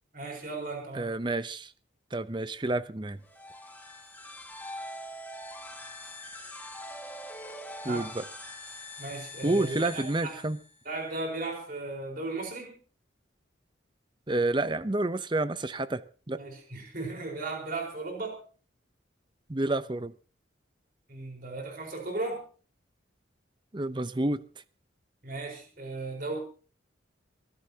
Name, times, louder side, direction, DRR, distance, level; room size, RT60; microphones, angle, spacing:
voice 1, 0.1-1.1 7.8-8.1 9.0-10.4 10.8-12.8 16.4-18.4 21.1-22.4 25.2-26.4, right 2 dB, 45° right, 4.5 m, -36 dB
voice 2, 0.9-1.7 2.1-3.2 7.8-8.2 9.4-10.6 14.3-16.4 19.5-20.1 23.7-24.4, right 2 dB, 25° right, 0.7 m, -29 dB
sound 1, 3.2-10.9, left 1 dB, 10° left, 2.0 m, -43 dB
23.5 x 15.5 x 2.9 m
head